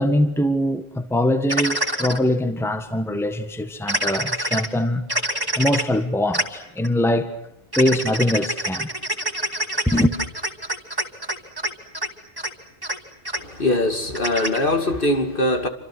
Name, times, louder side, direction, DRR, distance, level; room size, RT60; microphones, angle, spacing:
voice 1, 0.0-5.0 5.6-7.3 7.8-8.9 9.9-10.1, left 1 dB, ahead, 1.6 m, -22 dB
sound 1, 1.5-2.2 3.9-4.7 5.1-5.8 6.3-6.4 6.8-6.9 7.7-11.7 11.9-12.1 12.4-12.5 12.8-13.0 13.2-13.4 14.1-14.6, right 1 dB, 20° right, 2.8 m, -25 dB
voice 2, 13.4-15.7, left 1 dB, 50° left, 2.8 m, -22 dB
29.0 x 26.0 x 6.3 m
omnidirectional pair, 1.2 m